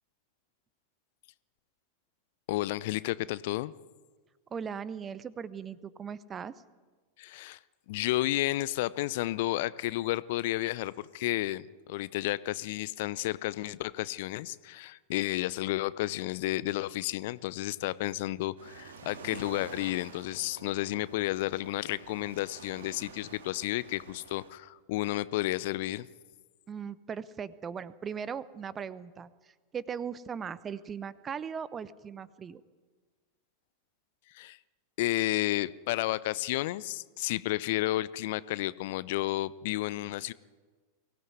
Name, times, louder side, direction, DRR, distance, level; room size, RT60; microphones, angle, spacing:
voice 1, 2.5-3.7 7.2-7.6 7.9-11.6 11.9-26.1 34.3-34.6 35.0-40.3, left 17 dB, 50° left, 19 dB, 0.6 m, -32 dB
voice 2, 4.5-6.5 26.7-32.6, right 7 dB, 20° right, 18 dB, 0.9 m, -39 dB
sound 1, 18.6-24.5, right 5 dB, 65° right, 2.3 m, -49 dB
23.0 x 17.0 x 9.4 m, 1.4 s
figure-of-eight pair, 90°, 0 cm